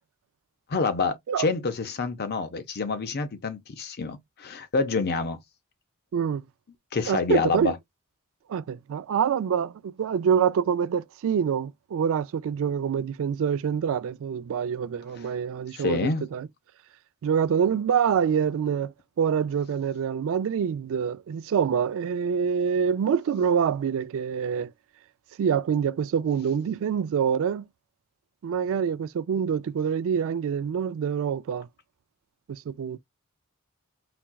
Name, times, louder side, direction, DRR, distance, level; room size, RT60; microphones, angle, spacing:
voice 1, 0.7-5.4 6.9-7.8 15.7-16.3, left 4 dB, 45° left, 0.6 m, -27 dB
voice 2, 6.1-6.4 7.1-7.7 8.5-16.5 17.2-24.7 25.4-27.6 28.4-31.7 32.5-33.0, right 7 dB, 65° right, 0.3 m, -26 dB
4.1 x 2.3 x 2.2 m
head